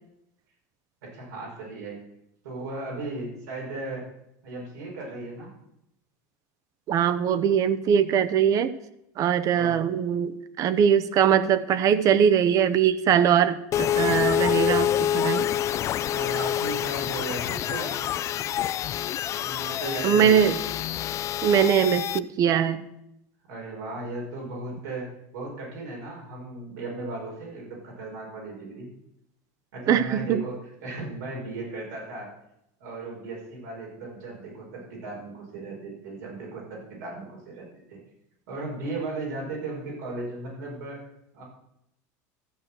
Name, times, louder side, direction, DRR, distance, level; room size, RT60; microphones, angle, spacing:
voice 1, 1.0-2.0 2.4-4.1 4.4-5.5 9.5-9.8 16.1-18.0 19.4-20.6 23.5-28.9 29.7-32.3 32.8-38.0 38.5-41.0 41.3-41.4, right 2 dB, 90° right, -2 dB, 5.5 m, -36 dB
voice 2, 6.9-8.7 9.2-15.5 20.0-20.5 21.4-22.8 29.9-30.4, right 8 dB, 40° right, 15 dB, 0.8 m, -21 dB
sound 1, 13.7-22.2, left 11 dB, 35° left, 0.4 m, -27 dB
13.0 x 6.3 x 7.7 m, 0.81 s
supercardioid pair, 130°, 9 cm